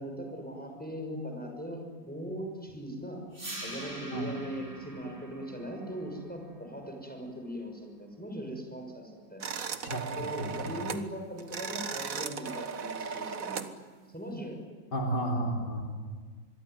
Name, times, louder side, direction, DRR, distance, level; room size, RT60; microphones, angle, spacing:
voice 1, 0.0-3.2 3.6-9.4 10.1-13.7 14.1-14.6, equal, 5° left, 3 dB, 6.2 m, -39 dB
sound 1, 3.3-9.4, right 1 dB, 25° right, 4.3 m, -45 dB
sound 2, 9.4-11.1 11.4-13.7, right 6 dB, 50° right, 1.6 m, -37 dB
voice 2, 9.8-10.7 14.9-15.8, right 1 dB, 60° left, 0 dB, 4.3 m, -32 dB
26.5 x 22.5 x 9.4 m, 1.5 s
omnidirectional pair, 2.1 m